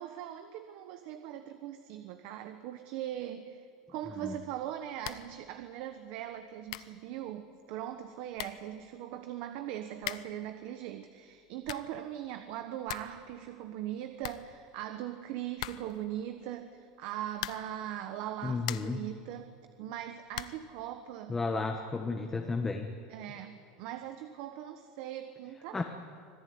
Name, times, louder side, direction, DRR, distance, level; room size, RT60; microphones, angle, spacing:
voice 1, 0.0-21.4 23.1-25.8, right 11 dB, 55° right, 8 dB, 1.3 m, -40 dB
sound 1, 5.0-5.4 5.7-5.8 6.4-6.5 6.7-7.0 8.0-8.1 8.3-8.7 10.0-10.4 11.4-12.0 12.4-12.5 12.7-13.2 13.5-13.6 13.9-14.0 14.2-15.0 15.6-16.1 17.3-17.8 18.3-19.1 20.3-20.7, left 14 dB, 90° left, 0.9 m, -41 dB
voice 2, 18.4-19.0 21.3-22.9 25.7-25.8, left 3 dB, 10° left, 4 dB, 1.3 m, -32 dB
25.5 x 17.5 x 9.6 m, 2.3 s
supercardioid pair, 155°, 3 cm